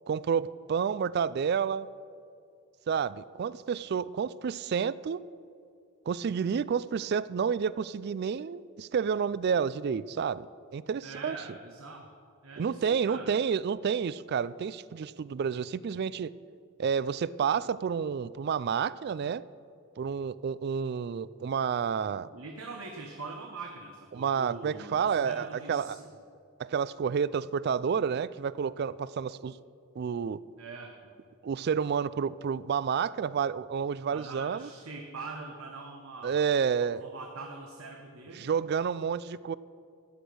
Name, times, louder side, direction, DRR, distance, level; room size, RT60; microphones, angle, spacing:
voice 1, 0.1-1.9 2.9-5.2 6.1-10.5 10.7-11.4 12.6-16.3 16.8-19.4 20.0-22.3 24.1-26.0 26.6-29.6 30.0-30.4 31.4-34.7 36.2-37.0 38.4-39.6, right 6 dB, 50° right, 19 dB, 0.3 m, -30 dB
voice 2, 11.0-12.1 12.4-13.4 22.2-26.1 30.6-31.0 34.1-36.4 36.8-38.5, right 3 dB, 70° right, 2 dB, 1.0 m, -43 dB
13.0 x 10.5 x 6.3 m, 2.4 s
head